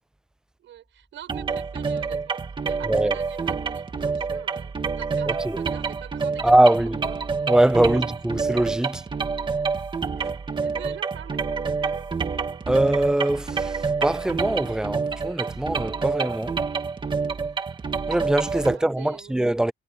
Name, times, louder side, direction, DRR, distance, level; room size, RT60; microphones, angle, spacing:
voice 1, 0.6-6.5 7.0-7.2 7.9-8.1 8.9-9.0 10.1-12.0 18.6-19.4, right 12 dB, 65° right, 7.1 m, -44 dB
sound 1, 1.3-18.7, right 5 dB, 20° right, 2.1 m, -28 dB
voice 2, 6.4-7.0 7.5-9.0 10.2-10.3 12.7-16.5 18.1-19.7, right 1 dB, 5° right, 0.3 m, -22 dB
cardioid pair, 160°, 21 cm